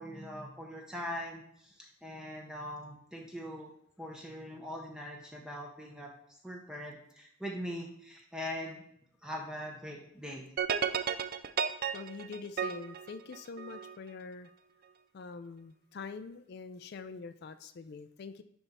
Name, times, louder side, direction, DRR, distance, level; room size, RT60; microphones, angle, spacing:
voice 1, 0.0-3.7 4.0-6.1 6.4-8.8 9.2-10.4, equal, 5° right, -1 dB, 0.7 m, -42 dB
sound 1, 10.6-13.9, right 7 dB, 45° right, 0.3 m, -33 dB
voice 2, 11.9-14.5 15.1-18.4, left 4 dB, 50° left, 11 dB, 0.3 m, -45 dB
9.7 x 3.5 x 4.2 m, 0.70 s
head